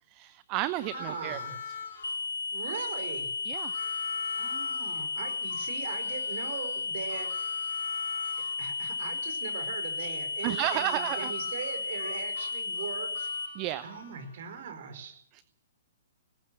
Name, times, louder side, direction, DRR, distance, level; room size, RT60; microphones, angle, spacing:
voice 1, 0.1-1.4 3.4-3.7 10.4-11.3 13.5-13.8 15.3-15.4, right 15 dB, 35° right, 15 dB, 0.7 m, -32 dB
Harmonica, 0.7-2.2 3.5-8.6 10.5-14.4, left 6 dB, 55° left, 4.0 m, -42 dB
voice 2, 0.9-1.6 2.5-3.3 4.3-7.3 8.6-13.1 13.8-15.1, right 7 dB, 55° right, 6 dB, 4.8 m, -40 dB
sound 1, 2.0-13.5, left 4 dB, 80° left, 2.1 m, -34 dB
19.0 x 18.0 x 7.6 m, 0.74 s
figure-of-eight pair, 115°, 0 cm